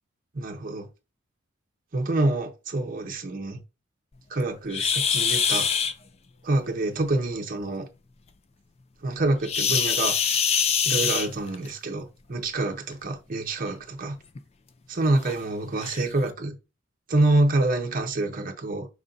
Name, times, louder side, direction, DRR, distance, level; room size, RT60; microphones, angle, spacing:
voice 1, 0.3-0.9 1.9-3.6 4.3-5.7 6.4-7.9 9.0-10.2 10.8-14.2 14.9-16.6 17.1-18.9, right 2 dB, 40° right, 0.6 m, -26 dB
sound 1, 4.7-5.9 9.4-11.7 12.9-13.1 13.7-13.8 14.3-14.4 15.2-15.3 15.8-16.0, left 7 dB, 30° left, 0.4 m, -24 dB
4.9 x 2.5 x 3.8 m
head